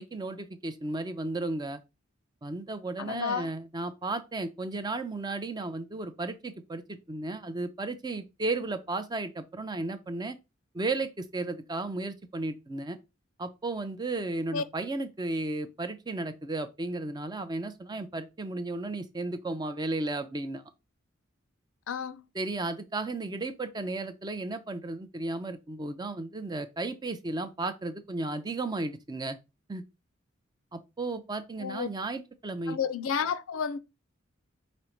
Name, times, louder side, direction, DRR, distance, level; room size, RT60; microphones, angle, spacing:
voice 1, 0.0-1.8 2.4-10.4 10.7-13.0 13.4-20.6 22.4-29.4 29.7-29.8 30.7-32.8, right 2 dB, 20° right, 0.4 m, -34 dB
voice 2, 3.0-3.5 14.5-14.6 21.9-22.2 31.6-31.9 32.7-33.8, left 6 dB, 75° left, 0.4 m, -31 dB
5.1 x 2.1 x 4.3 m
head